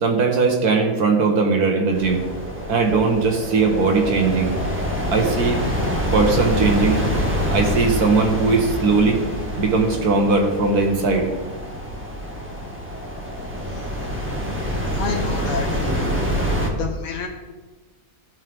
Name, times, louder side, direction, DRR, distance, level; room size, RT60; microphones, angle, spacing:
voice 1, 0.0-2.2 2.7-4.5 5.1-5.6 6.1-7.0 7.5-9.2 9.6-11.3, right 4 dB, 65° right, 3 dB, 1.8 m, -19 dB
sound 1, 1.9-16.7, equal, 5° right, 1.5 m, -26 dB
voice 2, 14.9-16.1 16.7-17.3, left 5 dB, 50° left, -1 dB, 1.5 m, -30 dB
16.0 x 5.5 x 3.6 m, 1.3 s
omnidirectional pair, 1.8 m